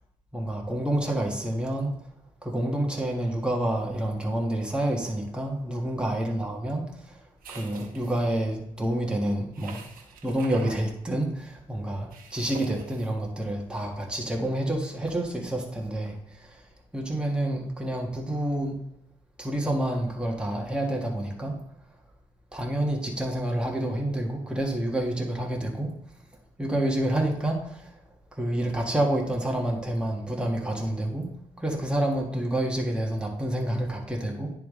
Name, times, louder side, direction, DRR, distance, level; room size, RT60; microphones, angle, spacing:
voice 1, 0.3-2.1 2.4-9.8 10.2-18.8 19.4-21.6 22.5-25.9 26.6-28.0 28.3-31.3 31.6-34.5, right 1 dB, 5° right, -1 dB, 1.6 m, -28 dB
sound 1, 7.4-8.4 9.5-10.8 12.1-13.1, right 5 dB, 85° right, 1.1 m, -44 dB
10.0 x 3.5 x 3.8 m, 0.76 s
supercardioid pair, 55°, 14 cm